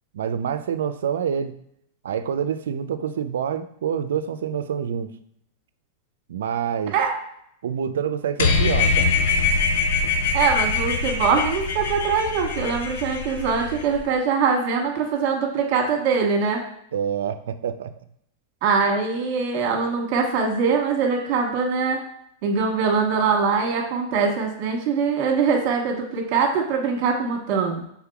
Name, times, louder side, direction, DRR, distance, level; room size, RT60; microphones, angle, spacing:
voice 1, 0.1-1.6 2.0-5.1 6.3-6.9 7.6-9.2 16.9-17.9, right 8 dB, 85° right, 11 dB, 0.3 m, -27 dB
sound 1, 8.4-14.0, left 4 dB, 75° left, 0.6 m, -23 dB
voice 2, 10.3-16.6 18.6-22.0 22.4-27.8, right 5 dB, 50° right, 1 dB, 1.2 m, -22 dB
5.7 x 3.6 x 2.3 m, 0.73 s
hypercardioid pair, 120°, 0 cm